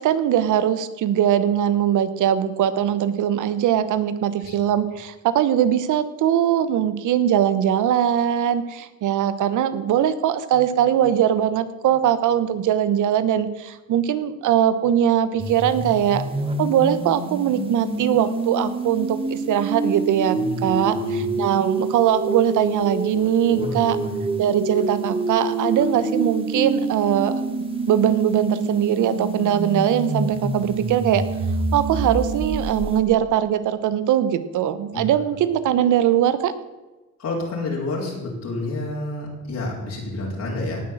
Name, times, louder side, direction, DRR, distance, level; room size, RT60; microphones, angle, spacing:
voice 1, 0.0-16.2 16.6-24.0 24.4-27.3 27.9-31.2 31.7-36.5, right 10 dB, 80° right, 13 dB, 1.2 m, -21 dB
sound 1, 15.4-33.0, right 2 dB, 20° right, 2.3 m, -27 dB
voice 2, 20.9-21.3 23.5-24.2 34.9-35.0 37.2-40.8, left 2 dB, 60° left, -4 dB, 4.4 m, -29 dB
18.0 x 6.5 x 7.5 m, 1.2 s
cardioid pair, 90°, 30 cm